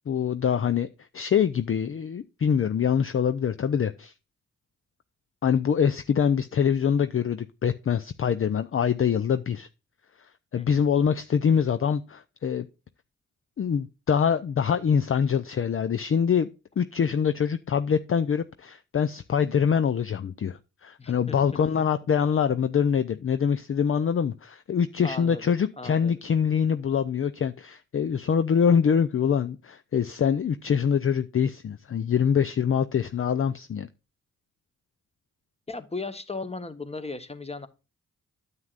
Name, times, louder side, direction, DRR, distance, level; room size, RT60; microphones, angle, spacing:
voice 1, 0.1-0.9 1.1-4.1 5.4-9.7 10.5-12.7 13.6-16.5 16.8-33.9, left 7 dB, 40° left, 0.5 m, -24 dB
voice 2, 21.0-21.4 25.0-25.5 25.8-26.2 35.7-37.7, left 3 dB, 20° left, 1.2 m, -37 dB
9.6 x 7.4 x 2.5 m
cardioid pair, 60°, 32 cm